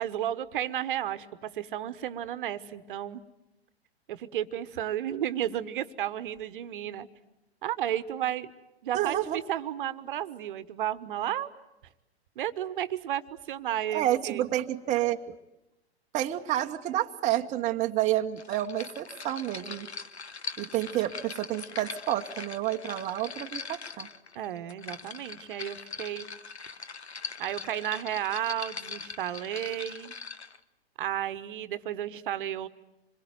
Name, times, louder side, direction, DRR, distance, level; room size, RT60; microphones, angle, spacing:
voice 1, 0.0-3.2 4.1-7.1 7.6-8.5 8.8-9.2 9.5-11.5 12.4-13.2 13.5-14.5 24.3-26.3 27.4-30.1 31.0-32.7, right 11 dB, 50° right, 14 dB, 1.2 m, -33 dB
voice 2, 8.9-9.4 13.9-15.3 16.1-19.9 20.6-24.1, right 13 dB, 20° right, 4 dB, 1.0 m, -29 dB
sound 1, 18.4-30.6, left 5 dB, 80° left, 1.5 m, -41 dB
26.5 x 22.5 x 9.4 m, 0.95 s
figure-of-eight pair, 110°, 33 cm